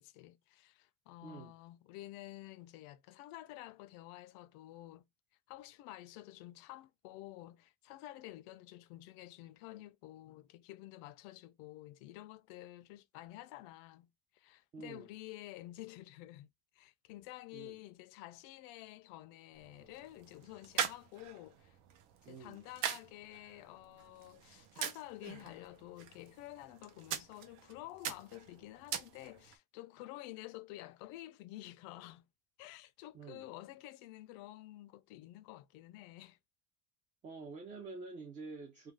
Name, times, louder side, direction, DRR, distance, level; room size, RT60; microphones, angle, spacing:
voice 1, 0.0-5.1 5.5-14.1 14.3-16.5 16.7-21.8 22.3-32.2 32.6-36.4, left 16 dB, 85° left, 0.5 m, -50 dB
voice 2, 1.2-1.5 14.7-15.1 17.5-17.8 22.3-22.6 33.1-33.4 37.2-38.9, right 4 dB, 25° right, 0.4 m, -48 dB
sound 1, 19.5-29.6, right 8 dB, 70° right, 0.6 m, -43 dB
2.3 x 2.2 x 3.2 m
cardioid pair, 170°, 34 cm